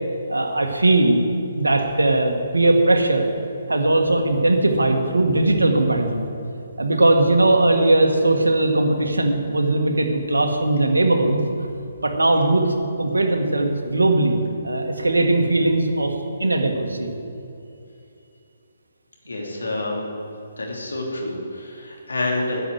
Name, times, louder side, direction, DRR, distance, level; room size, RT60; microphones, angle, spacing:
voice 1, 0.3-1.2 1.5-3.3 3.7-6.3 6.8-11.4 12.0-14.4 14.6-16.1 16.4-17.1, right 2 dB, 85° right, 4 dB, 1.5 m, -19 dB
voice 2, 19.3-20.1 20.6-22.6, left 2 dB, 80° left, -1 dB, 2.9 m, -28 dB
10.5 x 7.0 x 8.0 m, 2.7 s
figure-of-eight pair, 135°, 0 cm